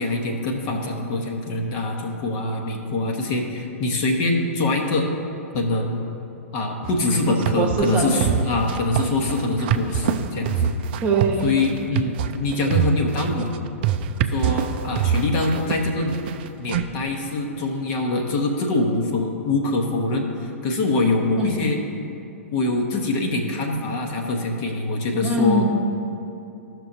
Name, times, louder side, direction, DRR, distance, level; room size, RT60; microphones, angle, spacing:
voice 1, 0.0-5.1 5.5-6.0 6.5-10.7 11.4-13.5 14.3-16.2 16.6-21.8 22.5-25.7, left 2 dB, 40° left, 2 dB, 1.0 m, -24 dB
sound 1, 6.8-16.8, right 9 dB, 45° right, 0.4 m, -24 dB
voice 2, 7.3-8.1 11.0-11.5 21.4-21.6 25.2-25.7, right 3 dB, 20° right, 0 dB, 1.1 m, -22 dB
14.5 x 6.1 x 2.7 m, 2.8 s
figure-of-eight pair, 105°, 8 cm